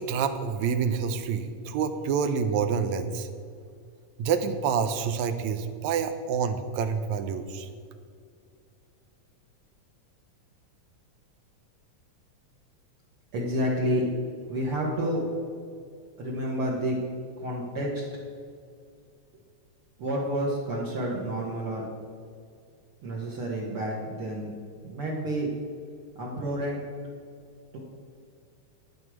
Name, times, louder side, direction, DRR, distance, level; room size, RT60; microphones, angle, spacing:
voice 1, 0.0-3.3 4.2-7.7, right 6 dB, 80° right, 9 dB, 1.9 m, -27 dB
voice 2, 13.3-14.0 14.5-15.2 16.2-17.0 17.4-18.1 20.0-21.8 23.0-24.5 24.8-25.5 26.2-26.8 27.7-27.8, right 1 dB, 55° right, -4 dB, 1.9 m, -29 dB
10.0 x 9.6 x 4.8 m, 2.3 s
omnidirectional pair, 3.4 m